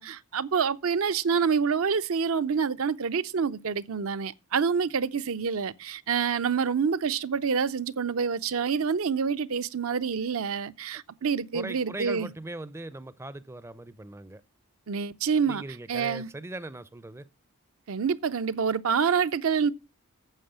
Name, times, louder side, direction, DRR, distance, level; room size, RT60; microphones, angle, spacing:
voice 1, 0.0-12.3 14.9-15.6 15.9-16.3 17.9-19.7, right 6 dB, 65° right, 0.6 m, -27 dB
voice 2, 11.5-14.4 15.5-17.2, right 2 dB, 10° right, 0.5 m, -39 dB
9.0 x 7.3 x 6.8 m
head